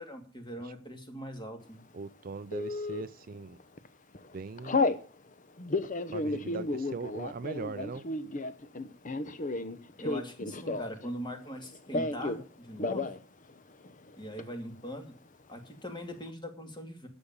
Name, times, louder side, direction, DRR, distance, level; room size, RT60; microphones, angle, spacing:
voice 1, 0.0-1.8 10.0-13.1 14.2-15.1 15.5-17.1, equal, 25° left, 2.6 m, -41 dB
voice 2, 1.9-3.6 4.3-4.9 6.1-8.1, right 4 dB, 45° right, 0.5 m, -40 dB
Telephone, 2.5-3.0 3.6-3.9 4.1-5.0 5.6-11.1 11.3-12.4 12.7-13.2 13.5-13.6 13.8-14.4, left 2 dB, 40° left, 0.9 m, -32 dB
12.0 x 7.1 x 7.0 m
head